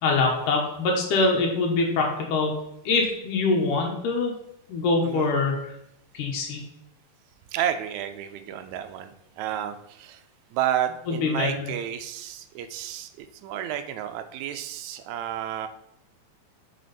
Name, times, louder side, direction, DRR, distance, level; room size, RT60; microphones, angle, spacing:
voice 1, 0.0-2.6 2.9-4.3 4.7-5.6 6.1-6.6 11.1-11.7, left 3 dB, 85° left, 0 dB, 2.6 m, -24 dB
voice 2, 7.5-10.2 10.5-15.7, right 10 dB, 75° right, 8 dB, 1.8 m, -31 dB
7.7 x 4.7 x 4.0 m, 0.82 s
omnidirectional pair, 3.6 m